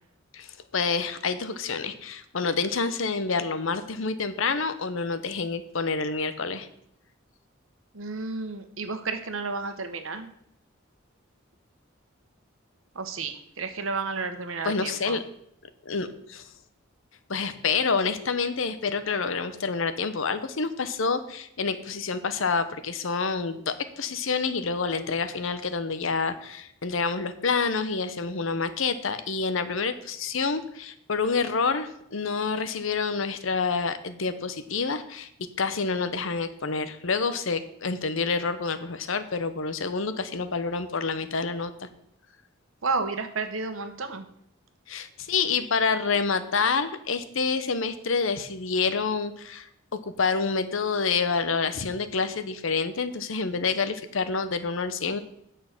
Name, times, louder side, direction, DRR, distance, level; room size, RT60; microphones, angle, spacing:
voice 1, 0.3-6.7 14.6-15.2 15.9-16.4 17.3-35.3 35.6-41.7 44.9-49.7 50.2-55.2, left 4 dB, 70° left, 11 dB, 0.9 m, -28 dB
voice 2, 7.9-10.3 12.9-15.2 42.8-44.2, right 4 dB, 75° right, 8 dB, 1.2 m, -31 dB
9.3 x 6.5 x 6.0 m, 0.74 s
head